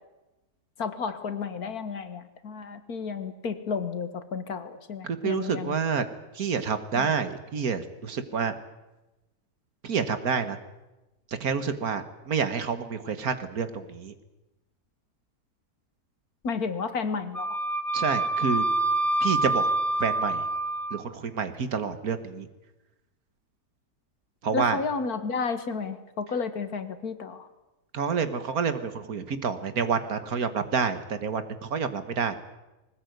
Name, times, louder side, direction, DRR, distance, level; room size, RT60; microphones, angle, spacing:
voice 1, 0.8-5.7 7.0-7.1 16.4-17.6 24.5-27.5, left 5 dB, 70° left, 11 dB, 2.0 m, -32 dB
voice 2, 5.0-6.1 6.3-8.5 9.8-10.6 11.3-14.1 17.9-18.6 19.2-19.7 20.0-20.5 20.9-22.5 24.4-24.8 27.9-32.4, right 6 dB, 65° right, 11 dB, 1.9 m, -28 dB
Wind instrument woodwind instrument, 17.3-21.0, right 2 dB, ahead, 1.2 m, -26 dB
20.5 x 19.5 x 9.4 m, 1.0 s
omnidirectional pair, 1.7 m